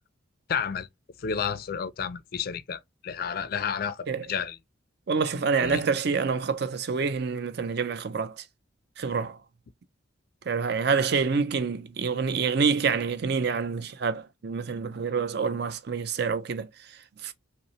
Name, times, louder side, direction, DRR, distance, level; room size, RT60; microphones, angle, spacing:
voice 1, 0.5-0.9 1.2-4.6 5.6-5.8, left 6 dB, 50° left, 0.4 m, -31 dB
voice 2, 5.1-8.4 9.0-9.4 10.5-17.3, right 5 dB, 55° right, 0.5 m, -27 dB
5.2 x 2.0 x 2.9 m
head